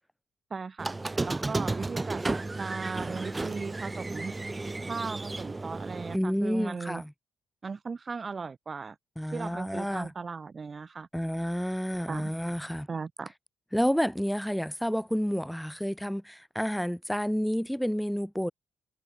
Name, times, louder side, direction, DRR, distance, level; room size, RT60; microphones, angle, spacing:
voice 1, 0.5-1.0 1.2-2.2 2.6-4.3 4.9-7.0 7.6-9.0 9.3-11.1 12.1-12.3 12.9-13.3, right 4 dB, 35° right, 1.0 m, -37 dB
Squeak, 0.8-6.2, right 2 dB, 20° right, 3.0 m, -33 dB
voice 2, 6.1-7.1 9.2-10.1 11.1-12.9 13.7-18.5, equal, ahead, 1.5 m, -30 dB
cardioid pair, 90°, 0 cm